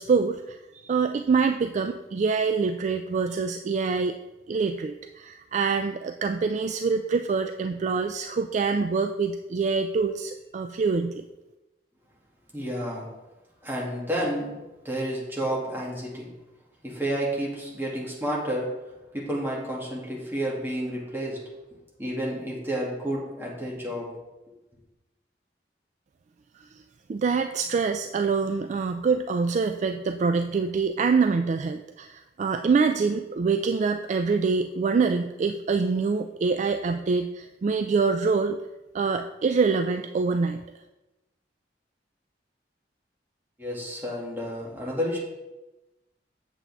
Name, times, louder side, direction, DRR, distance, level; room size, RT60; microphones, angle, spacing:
voice 1, 0.0-4.2 4.5-11.2 26.6-26.8 27.1-38.6 38.9-40.6, right 4 dB, 40° right, 7 dB, 0.3 m, -25 dB
voice 2, 12.5-13.1 13.6-14.6 14.8-16.3 16.8-18.7 19.1-21.4 22.0-24.1 43.6-45.2, equal, 15° right, -5 dB, 2.2 m, -30 dB
8.0 x 7.3 x 3.5 m, 1.0 s
head